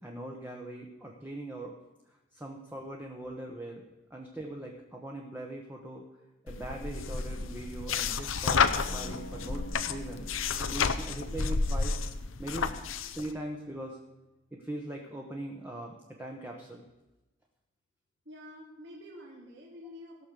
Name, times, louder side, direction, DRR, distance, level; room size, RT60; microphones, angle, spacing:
voice 1, 0.0-1.7 2.3-6.0 6.4-10.3 10.6-12.0 12.4-12.8 13.1-14.0 14.5-16.9, right 1 dB, 10° right, 0 dB, 1.1 m, -41 dB
sound 1, 6.5-13.3, left 5 dB, 85° left, 0.8 m, -31 dB
sound 2, 8.9-14.9, left 1 dB, 65° left, 1.0 m, -51 dB
voice 2, 18.3-20.3, left 1 dB, 65° right, -3 dB, 2.3 m, -48 dB
17.0 x 6.4 x 6.8 m, 1.0 s
head